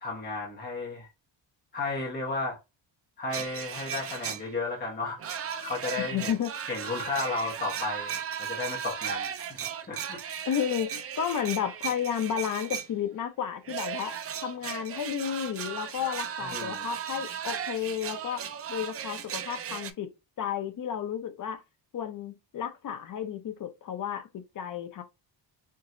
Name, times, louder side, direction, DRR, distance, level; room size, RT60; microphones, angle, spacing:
voice 1, 0.0-1.1 1.7-2.6 3.2-6.3 6.7-8.1 8.4-10.2 16.4-16.9, left 3 dB, 20° left, 1.2 m, -34 dB
sound 1, 3.3-4.7 5.2-12.9 13.6-19.9, right 8 dB, 35° right, 0.4 m, -36 dB
voice 2, 6.0-6.7 10.5-20.1 20.4-21.6 21.9-25.0, left 9 dB, 45° left, 0.7 m, -32 dB
4.6 x 2.9 x 2.6 m
cardioid pair, 165°, 46 cm